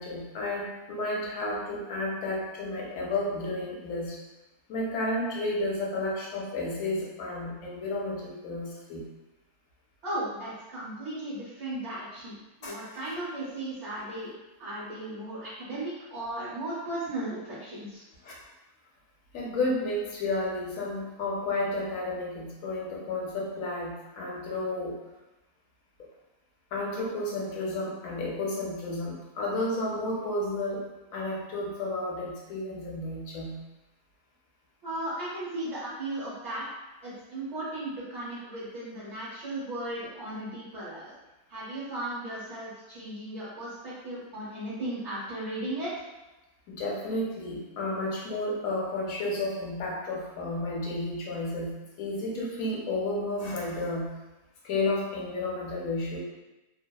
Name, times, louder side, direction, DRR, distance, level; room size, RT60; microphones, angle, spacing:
voice 1, 0.0-4.2 4.7-9.1 12.6-13.1 18.2-18.3 19.3-24.9 26.7-33.6 46.7-54.2 54.6-56.2, left 2 dB, 75° left, -3 dB, 1.0 m, -32 dB
voice 2, 10.0-14.3 14.6-18.0 34.8-36.6 37.0-41.2 41.5-45.9, right 1 dB, 55° right, -12 dB, 1.2 m, -36 dB
2.7 x 2.0 x 2.2 m, 1.0 s
omnidirectional pair, 1.4 m